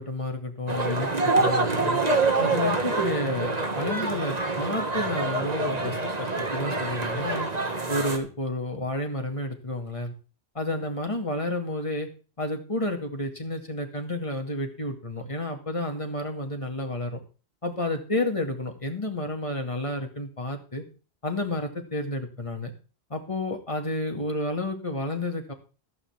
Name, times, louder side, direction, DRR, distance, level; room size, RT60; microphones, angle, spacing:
voice 1, 0.0-2.0 2.4-7.5 7.9-10.1 10.5-12.1 12.4-17.2 17.6-20.8 21.2-22.7 23.1-25.5, left 1 dB, 30° left, 3 dB, 2.2 m, -30 dB
sound 1, 0.7-8.2, right 3 dB, 40° right, 1.7 m, -26 dB
14.5 x 5.8 x 7.1 m, 0.36 s
omnidirectional pair, 1.1 m